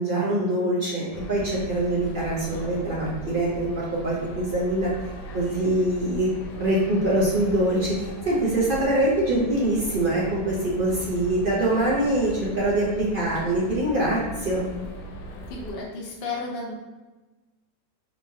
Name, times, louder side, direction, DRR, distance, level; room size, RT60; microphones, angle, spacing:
voice 1, 0.0-4.9 5.3-6.3 6.6-14.7, right 1 dB, 45° right, -5 dB, 0.7 m, -24 dB
sound 1, 1.1-15.7, right 1 dB, 90° left, 1.2 m, -39 dB
voice 2, 15.5-16.7, left 3 dB, 50° left, -2 dB, 0.8 m, -33 dB
4.4 x 2.9 x 2.7 m, 1.2 s
omnidirectional pair, 1.7 m